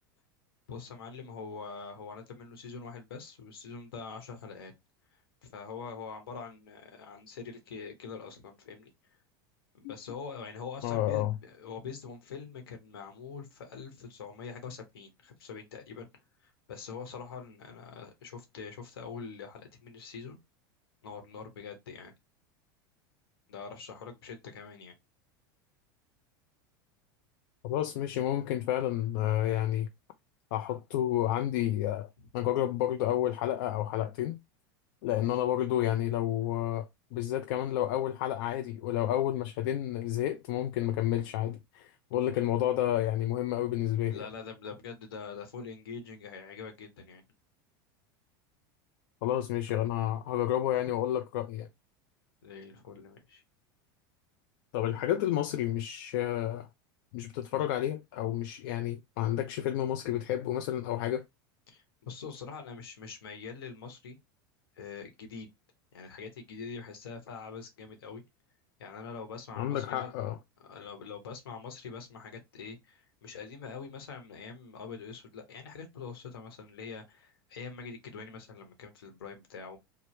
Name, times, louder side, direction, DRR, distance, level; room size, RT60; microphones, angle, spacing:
voice 1, 0.7-4.7 5.5-8.9 9.7-16.1 16.4-20.4 21.0-22.1 23.5-24.9 42.3-42.5 44.1-47.2 52.4-53.4 61.7-64.2 64.8-65.5 65.9-68.2 68.8-70.1 70.7-79.8, left 5 dB, 90° left, 1.0 m, -44 dB
voice 2, 10.8-11.3 27.6-29.9 30.5-34.4 35.0-44.3 49.2-51.7 54.7-56.7 57.1-61.2 69.6-70.4, left 12 dB, 70° left, 0.4 m, -30 dB
3.0 x 2.0 x 3.1 m
supercardioid pair, 110°, 12 cm